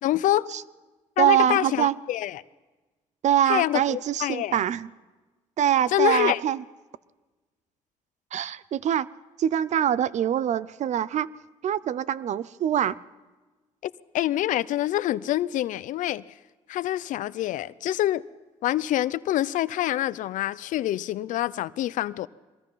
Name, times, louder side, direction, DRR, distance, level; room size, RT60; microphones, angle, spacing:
voice 1, 0.0-0.5 1.2-2.4 3.5-4.6 5.9-6.4 13.8-16.2 16.7-18.2 18.6-22.3, left 14 dB, 75° left, 0.6 m, -26 dB
voice 2, 1.2-1.9 3.2-4.9 5.6-6.6 8.3-9.1 9.4-11.3 11.6-13.0, right 10 dB, 60° right, 0.6 m, -24 dB
23.5 x 20.5 x 5.6 m
cardioid pair, 75°, 13 cm